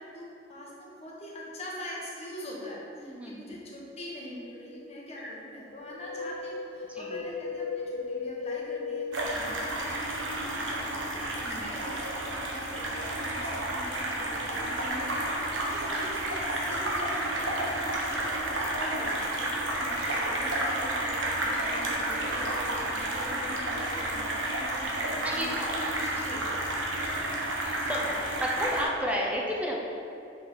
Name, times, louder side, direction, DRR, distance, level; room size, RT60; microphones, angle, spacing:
voice 1, 0.0-26.8 27.7-27.9, equal, 35° left, -4 dB, 1.5 m, -43 dB
voice 2, 3.0-3.6 5.2-5.3 6.9-7.3 9.3-9.6 11.4-11.7 25.2-25.7 27.2-28.0 28.4-29.8, equal, 5° right, -2 dB, 0.8 m, -33 dB
Wind, 5.8-10.1 10.4-10.5, left 4 dB, 75° left, 0.3 m, -36 dB
sound 1, 9.1-28.8, right 1 dB, 85° right, 1.2 m, -31 dB
6.2 x 5.5 x 5.1 m, 2.7 s
head